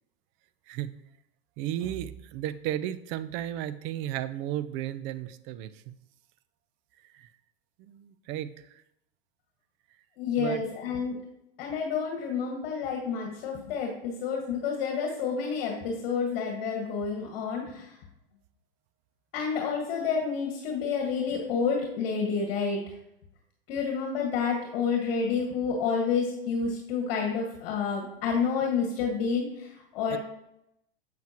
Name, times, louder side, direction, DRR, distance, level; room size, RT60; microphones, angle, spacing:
voice 1, 0.7-1.0 1.6-5.9 7.1-7.3 7.8-8.8 10.4-10.6 30.1-30.2, right 12 dB, 40° right, 15 dB, 0.6 m, -34 dB
voice 2, 10.2-11.2 11.6-18.0 19.3-22.8 23.7-30.2, left 5 dB, 55° left, 1 dB, 1.8 m, -29 dB
7.5 x 7.4 x 3.0 m, 0.80 s
hypercardioid pair, 110°, 30 cm